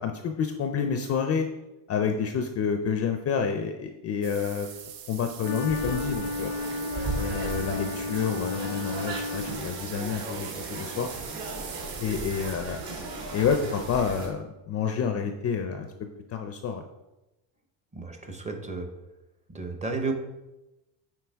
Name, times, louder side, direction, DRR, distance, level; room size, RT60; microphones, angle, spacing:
voice 1, 0.0-1.5 1.9-4.7 5.1-6.5 7.1-11.1 12.0-12.8 13.3-15.9 16.3-16.8, left 6 dB, 35° left, 6 dB, 0.4 m, -29 dB
sound 1, 4.2-12.5, right 9 dB, 80° right, 0.9 m, -44 dB
Wind instrument woodwind instrument, 5.4-9.9, left 3 dB, 90° left, 0.6 m, -33 dB
sound 2, 5.7-14.3, right 3 dB, 55° right, 2.1 m, -36 dB
voice 2, 17.9-18.9 19.5-20.1, right 3 dB, 15° right, 5 dB, 0.6 m, -32 dB
7.7 x 4.7 x 3.5 m, 0.99 s
cardioid pair, 145°, 46 cm